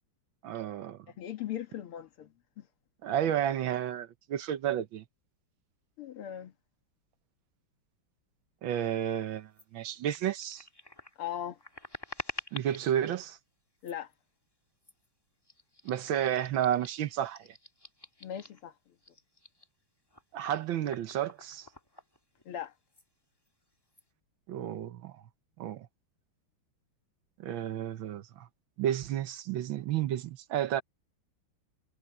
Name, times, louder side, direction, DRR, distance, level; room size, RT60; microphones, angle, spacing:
voice 1, 0.4-1.0 3.0-5.0 8.6-10.6 12.5-13.4 15.8-17.5 20.3-21.7 24.5-25.2 25.6-25.9 27.4-28.5 28.8-30.8, right 10 dB, 70° right, 1.5 m, -31 dB
voice 2, 1.2-2.7 6.0-6.5 11.2-11.6 13.8-14.1 18.2-18.7 22.5-22.7, left 10 dB, 75° left, 2.2 m, -39 dB
sound 1, 9.5-9.7 10.1-13.0 13.7-14.1 14.8-15.1 15.4-18.7 19.0-22.6 22.9-23.1 23.4-24.0, left 1 dB, 10° left, 2.0 m, -48 dB
omnidirectional pair, 2.4 m